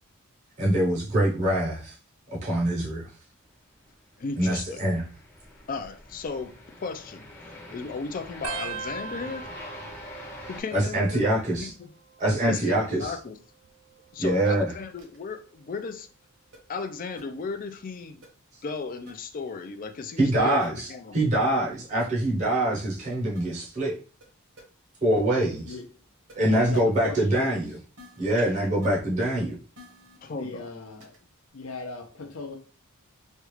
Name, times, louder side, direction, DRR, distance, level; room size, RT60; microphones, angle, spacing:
voice 1, 0.6-1.9 2.3-3.1 4.4-5.0 10.7-11.7 12.2-13.2 14.2-14.7 20.2-24.0 25.0-25.7 26.3-27.8 28.2-29.6, right 1 dB, 35° right, 0.7 m, -24 dB
sound 1, 4.0-10.6, left 1 dB, 10° left, 0.7 m, -45 dB
voice 2, 4.2-4.8 5.7-6.5 6.8-7.2 7.7-9.5 10.5-11.9 12.5-13.4 14.1-16.1 16.7-18.2 18.6-21.2 28.4-28.5 30.2-30.7, left 4 dB, 40° left, 0.4 m, -35 dB
sound 2, 8.4-11.6 11.9-12.5 13.5-15.0 15.6-15.9 17.1-17.5 19.0-19.1, right 7 dB, 85° right, 0.4 m, -42 dB
sound 3, 15.0-15.2 16.5-16.6 17.2-17.3 18.2-18.3 19.1-19.2 20.6-20.7 22.0-22.1 23.3-23.4 24.2-24.3 24.6-24.7 26.3-26.4 26.7-26.8 28.0-28.4 28.8-28.9 29.7-30.2 31.0-31.2, left 2 dB, 60° right, 1.0 m, -49 dB
voice 3, 26.5-27.6 30.3-31.2 31.5-32.6, left 3 dB, 70° left, 0.7 m, -38 dB
3.2 x 2.4 x 3.0 m
head